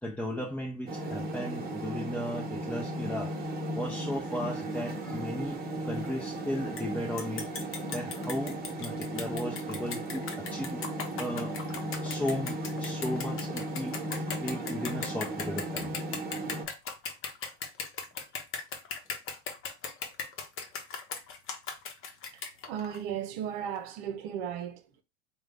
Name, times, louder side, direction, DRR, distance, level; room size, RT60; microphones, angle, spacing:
voice 1, 0.0-7.5 7.9-11.6 11.9-16.2, left 1 dB, 5° left, 0.7 m, -36 dB
sound 1, 0.9-16.6, right 1 dB, 25° right, 1.1 m, -36 dB
sound 2, 6.8-6.9 7.2-23.0, left 5 dB, 35° left, 0.9 m, -38 dB
voice 2, 22.3-25.0, right 9 dB, 65° right, 0.8 m, -36 dB
3.6 x 2.3 x 3.4 m
hypercardioid pair, 95°, 35 cm